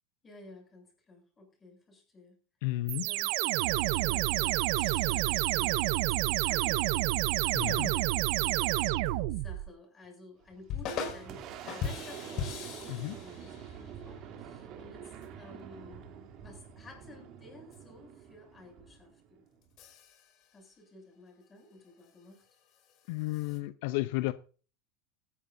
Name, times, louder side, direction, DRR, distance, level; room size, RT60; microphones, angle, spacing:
voice 1, 0.2-2.4 2.7-15.1 15.4-16.1 16.4-19.4 20.5-22.5, left 2 dB, 20° left, 7.4 m, -53 dB
voice 2, 2.6-3.0 7.5-7.9 12.9-13.1 23.1-24.3, left 19 dB, 65° left, 0.7 m, -32 dB
sound 1, 2.9-9.7, right 17 dB, 65° right, 0.8 m, -29 dB
sound 2, 4.8-6.1 6.7-6.8 9.0-9.1 10.7-11.4 11.7-14.2 15.2-15.3 17.7-17.8 19.6-20.5 21.6-23.6, left 6 dB, 45° left, 5.9 m, -41 dB
Boom, 10.4-19.8, right 8 dB, 45° right, 3.0 m, -47 dB
16.5 x 14.5 x 2.7 m
supercardioid pair, 140°, 0 cm